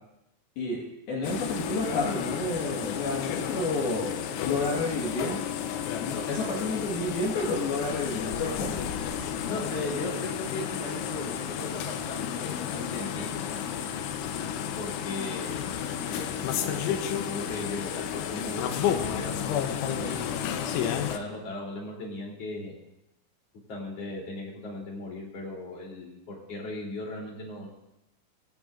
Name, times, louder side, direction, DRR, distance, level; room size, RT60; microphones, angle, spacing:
voice 1, 1.1-5.4 6.0-8.8, left 2 dB, 60° left, -3 dB, 3.1 m, -30 dB
sound 1, 1.2-21.2, left 9 dB, 75° left, 3.1 m, -32 dB
voice 2, 9.5-13.6 14.8-15.7 16.1-20.4 21.1-22.7 23.7-27.7, left 2 dB, 35° left, -3 dB, 3.8 m, -37 dB
20.5 x 15.0 x 2.6 m, 0.89 s
omnidirectional pair, 5.9 m